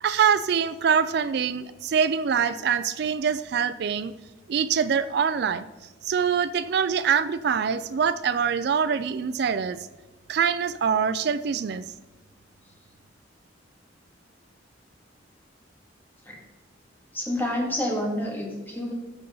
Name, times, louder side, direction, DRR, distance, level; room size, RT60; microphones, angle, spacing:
voice 1, 0.0-4.1 4.5-5.7 6.0-9.8 10.3-11.8, right 7 dB, 60° right, 14 dB, 0.4 m, -24 dB
voice 2, 17.1-18.9, left 1 dB, 10° left, -2 dB, 2.2 m, -28 dB
14.0 x 6.9 x 3.9 m, 1.2 s
head